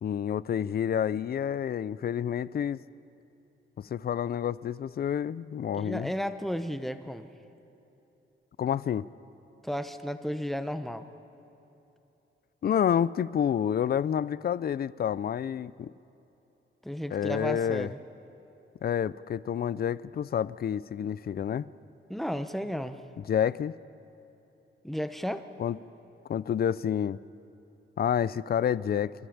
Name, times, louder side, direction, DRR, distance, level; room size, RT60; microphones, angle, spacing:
voice 1, 0.0-2.8 3.8-6.1 8.6-9.1 12.6-15.9 17.1-17.9 18.8-21.7 23.3-23.7 25.6-25.8 26.3-27.2 28.0-29.1, left 9 dB, 50° left, 19 dB, 0.4 m, -29 dB
voice 2, 5.7-7.3 9.6-11.1 16.8-18.0 22.1-23.0 24.8-25.5, equal, ahead, 10 dB, 0.7 m, -33 dB
28.0 x 13.5 x 7.2 m, 3.0 s
wide cardioid pair, 155°, 21 cm